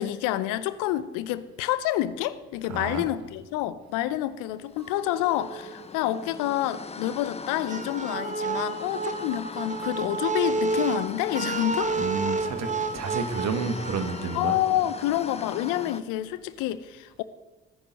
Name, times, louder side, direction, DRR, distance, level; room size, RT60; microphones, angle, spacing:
voice 1, 0.0-11.9 14.3-17.2, left 13 dB, 80° left, 0.7 m, -28 dB
voice 2, 2.7-3.0 12.0-14.6, right 5 dB, 60° right, 1.6 m, -30 dB
sound 1, 4.7-16.0, left 4 dB, 20° left, 0.6 m, -41 dB
Chink clink, 4.8-9.1 9.5-10.1, right 8 dB, 80° right, 3.8 m, -49 dB
sound 2, 7.7-14.4, right 3 dB, 25° right, 1.3 m, -30 dB
19.0 x 10.0 x 4.1 m
hypercardioid pair, 45°, 31 cm